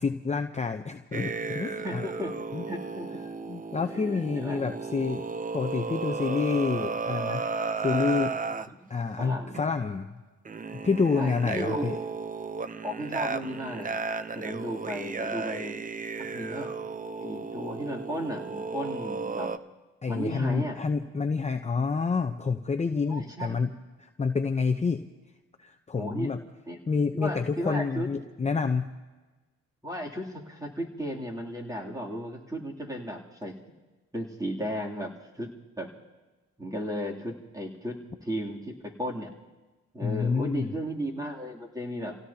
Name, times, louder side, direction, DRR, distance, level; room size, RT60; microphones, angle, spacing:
voice 1, 0.0-2.0 2.5-2.6 3.5-5.2 5.5-7.4 7.8-8.3 8.9-10.1 10.8-12.0 20.0-23.7 24.0-25.0 25.6-26.4 26.9-28.9 40.0-40.7, left 5 dB, 20° left, 5 dB, 0.8 m, -28 dB
sound 1, 1.1-8.7 9.5-9.8 10.4-19.6, right 4 dB, 25° right, 0.7 m, -34 dB
voice 2, 1.8-2.3 2.6-3.1 3.8-4.6 8.8-8.9 9.2-9.7 11.1-11.8 12.8-13.9 14.3-15.8 16.2-16.7 17.2-19.5 20.1-20.8 23.1-23.6 26.0-26.3 26.7-26.8 27.1-28.1 29.8-33.6 34.1-35.5 35.8-35.9 36.6-39.3 39.9-42.2, equal, 10° right, -1 dB, 3.1 m, -35 dB
29.5 x 17.0 x 2.9 m, 1.2 s
cardioid pair, 90°, 30 cm